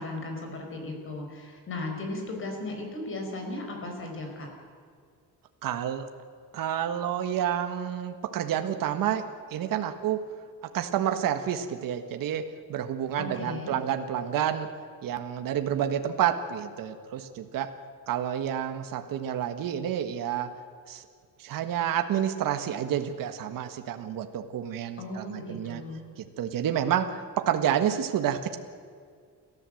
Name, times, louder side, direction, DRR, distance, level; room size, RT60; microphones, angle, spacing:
voice 1, 0.0-4.5 13.2-13.8 25.0-26.0, left 2 dB, 35° left, 3 dB, 5.2 m, -36 dB
voice 2, 5.6-6.1 6.5-10.3 10.6-14.7 15.0-17.7 18.1-20.5 20.9-21.0 21.4-25.8 26.2-28.6, right 10 dB, 65° right, 7 dB, 1.5 m, -29 dB
29.5 x 14.0 x 7.8 m, 2.1 s
cardioid pair, 155°, 36 cm